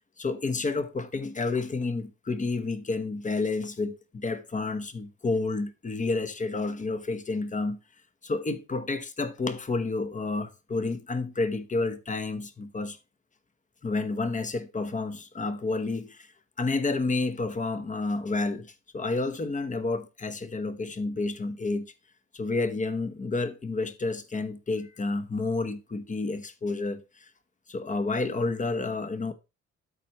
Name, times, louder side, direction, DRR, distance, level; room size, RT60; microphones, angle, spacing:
voice 1, 0.2-7.8 8.2-13.0 13.8-16.3 16.6-21.9 22.3-27.3 27.7-29.3, left 3 dB, 25° left, 1.1 m, -30 dB
12.5 x 4.4 x 3.1 m
cardioid pair, 90°, 30 cm